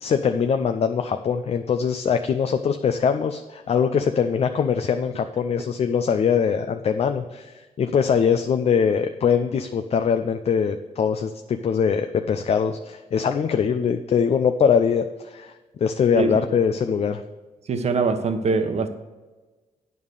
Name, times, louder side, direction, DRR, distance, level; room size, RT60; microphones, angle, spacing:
voice 1, 0.0-15.5 15.8-17.2, left 7 dB, 50° left, 7 dB, 0.5 m, -22 dB
voice 2, 16.1-16.6 17.7-18.9, right 4 dB, 50° right, 8 dB, 1.0 m, -23 dB
9.3 x 5.4 x 6.6 m, 1.2 s
cardioid pair, 95°, 14 cm